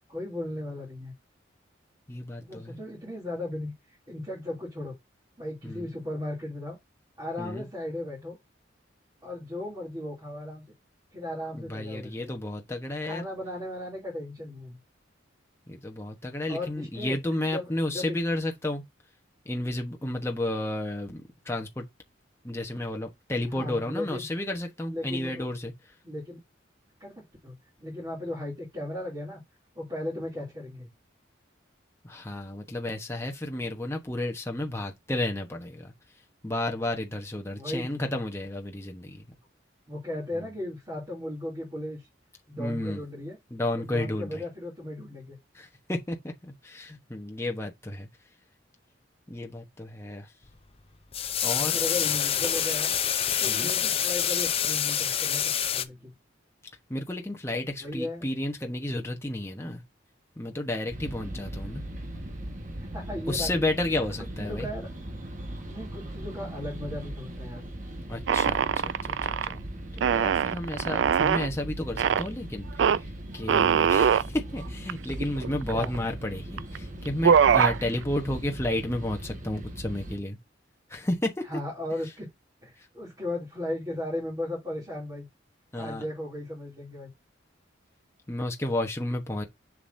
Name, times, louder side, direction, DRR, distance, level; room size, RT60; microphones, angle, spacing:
voice 1, 0.1-1.1 2.4-5.0 5.4-6.8 7.2-8.4 9.2-10.6 11.1-12.3 13.0-14.8 16.5-17.2 17.5-18.2 23.5-24.3 24.8-25.5 26.0-26.4 27.0-29.4 29.7-30.9 37.5-38.0 39.9-42.1 42.5-43.4 43.8-45.4 51.5-52.9 53.4-56.1 57.8-58.3 62.9-63.7 64.4-64.9 65.7-67.6 75.7-75.9 81.5-82.3 82.6-85.3 85.7-87.1, left 1 dB, 20° right, 2.8 m, -36 dB
voice 2, 2.1-2.8 5.6-5.9 7.4-7.6 11.5-13.2 15.7-18.8 19.4-21.9 22.4-25.7 32.0-35.9 36.4-39.4 42.6-43.0 43.5-44.4 45.5-48.1 49.3-50.3 51.4-51.8 53.5-53.7 56.9-59.8 60.4-61.8 63.3-64.7 68.1-69.6 69.9-80.4 80.9-81.4 85.7-86.0 88.3-89.4, left 1 dB, 15° left, 1.0 m, -32 dB
sound 1, 51.1-55.8, left 9 dB, 30° left, 0.6 m, -27 dB
sound 2, 60.9-80.2, right 1 dB, 40° right, 1.4 m, -39 dB
sound 3, 68.3-69.5 70.0-71.5 72.0-72.3 72.8-73.0 73.5-74.3 74.9-75.0 75.2-76.0 76.6-76.8 77.0-77.8, right 7 dB, 70° right, 0.3 m, -22 dB
6.9 x 6.1 x 2.7 m
head